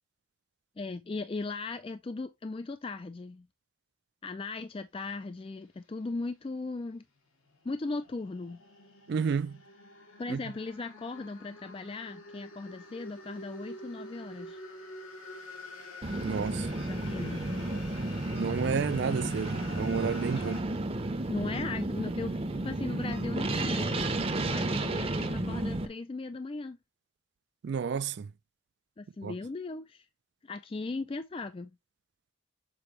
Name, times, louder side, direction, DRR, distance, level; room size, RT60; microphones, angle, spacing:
voice 1, 0.8-3.5 4.2-7.0 7.6-8.6 10.2-14.6 16.8-17.5 20.4-20.6 21.3-24.1 24.4-26.8 29.0-30.1 30.4-31.8, left 3 dB, 25° left, 0.3 m, -38 dB
sound 1, 7.4-20.6, left 2 dB, 85° left, 2.4 m, -47 dB
voice 2, 9.1-9.6 10.3-10.4 16.2-16.7 18.4-20.6 27.6-28.3 29.2-29.3, right 6 dB, 55° right, 0.3 m, -31 dB
sound 2, 16.0-25.9, right 2 dB, 25° right, 0.7 m, -32 dB
7.0 x 4.3 x 3.1 m
head